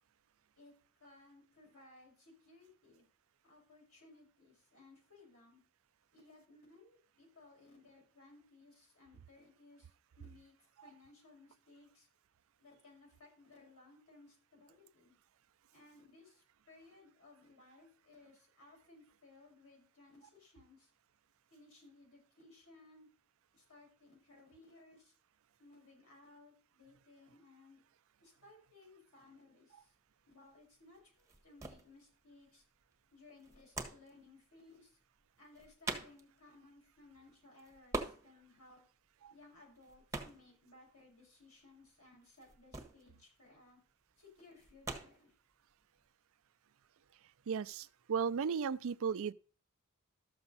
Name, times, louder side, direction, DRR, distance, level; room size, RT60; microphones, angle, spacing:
voice 1, 1.0-3.1 3.4-5.6 6.1-10.5 10.8-12.1 12.6-15.1 15.7-20.9 21.5-23.1 23.5-25.1 25.6-27.8 28.2-29.9 30.2-32.6 33.1-34.9 35.4-38.8 39.3-43.8 44.2-45.3, left 2 dB, 75° left, 6.0 m, -61 dB
sound 1, 29.8-46.1, right 3 dB, 15° right, 1.4 m, -47 dB
voice 2, 47.5-49.3, right 6 dB, 65° right, 0.4 m, -35 dB
13.0 x 7.0 x 4.1 m
head